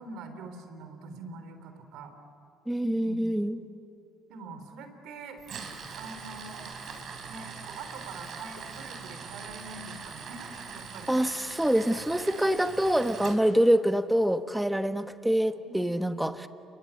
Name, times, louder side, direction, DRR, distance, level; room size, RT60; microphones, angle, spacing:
voice 1, 0.0-2.1 2.9-3.4 4.3-5.4 6.0-6.8 7.3-11.1 15.6-15.7, right 3 dB, 75° right, 8 dB, 3.7 m, -44 dB
voice 2, 2.7-3.6 11.1-16.5, equal, 5° right, 9 dB, 1.2 m, -25 dB
Tools, 5.4-13.4, right 5 dB, 50° right, 4.3 m, -42 dB
29.5 x 23.0 x 8.6 m, 2.7 s
cardioid pair, 105°, 0 cm